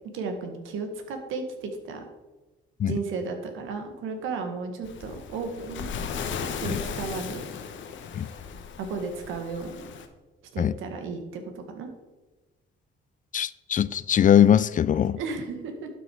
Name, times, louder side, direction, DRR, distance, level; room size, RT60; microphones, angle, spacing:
voice 1, 0.1-2.0 2.8-5.9 6.5-7.5 8.8-9.9 10.5-11.9 15.2-15.9, right 4 dB, 90° right, 1.7 m, -34 dB
Waves surf, 4.8-10.1, left 6 dB, 70° left, 1.1 m, -36 dB
voice 2, 13.3-15.2, left 9 dB, 40° left, 0.4 m, -21 dB
11.5 x 6.2 x 4.7 m
cardioid pair, 90°, 20 cm